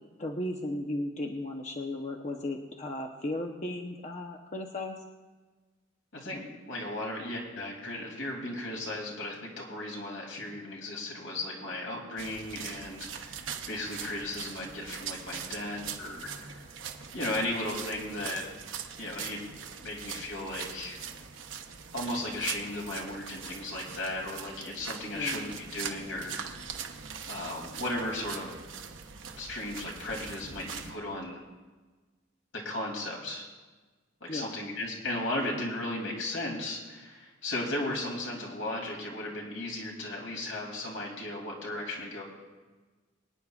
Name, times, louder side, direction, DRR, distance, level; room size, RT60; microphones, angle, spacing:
voice 1, 0.2-5.0 25.1-25.4 34.3-34.6, left 1 dB, 35° left, 1 dB, 0.8 m, -35 dB
voice 2, 6.1-16.6 17.1-18.4 19.0-19.5 19.8-21.0 21.9-26.7 27.3-28.6 29.4-31.4 32.5-33.4 34.2-42.2, left 1 dB, 80° left, -1 dB, 2.9 m, -36 dB
sound 1, 12.2-30.9, right 7 dB, 75° right, 0.9 m, -42 dB
25.0 x 9.7 x 2.4 m, 1.3 s
head